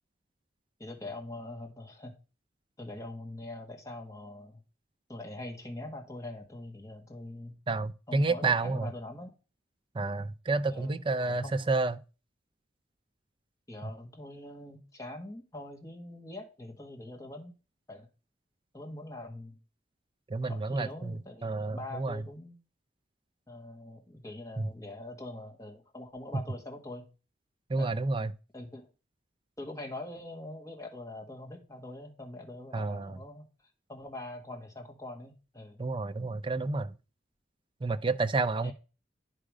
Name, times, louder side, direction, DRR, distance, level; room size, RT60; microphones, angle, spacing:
voice 1, 0.8-2.1 2.8-4.6 5.1-7.5 8.1-9.3 10.7-11.7 13.7-17.5 17.9-18.1 18.7-19.6 20.4-22.6 23.5-27.0 27.8-27.9 28.5-28.9 29.6-33.5 33.9-35.8 38.6-38.7, left 1 dB, 15° left, 1.8 m, -43 dB
voice 2, 7.7-8.9 9.9-12.0 13.8-13.9 20.3-22.2 24.6-24.7 26.3-26.4 27.7-28.3 32.7-33.2 35.8-37.0 37.8-38.7, right 3 dB, 25° right, 0.5 m, -30 dB
10.0 x 4.9 x 4.9 m
head